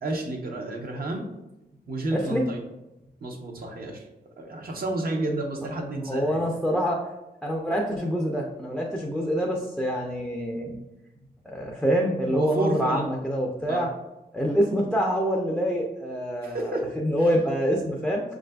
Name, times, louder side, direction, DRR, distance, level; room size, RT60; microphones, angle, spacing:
voice 1, 0.0-1.3 1.9-2.6 3.2-4.0 4.4-6.4 12.3-13.1 13.7-13.9 16.4-16.9, right 2 dB, 60° right, 1 dB, 0.7 m, -30 dB
voice 2, 2.1-2.4 6.0-7.0 7.4-10.8 11.4-13.9 14.3-18.2, equal, ahead, 0 dB, 0.4 m, -26 dB
5.5 x 2.4 x 2.2 m, 0.98 s
cardioid pair, 85°, 17 cm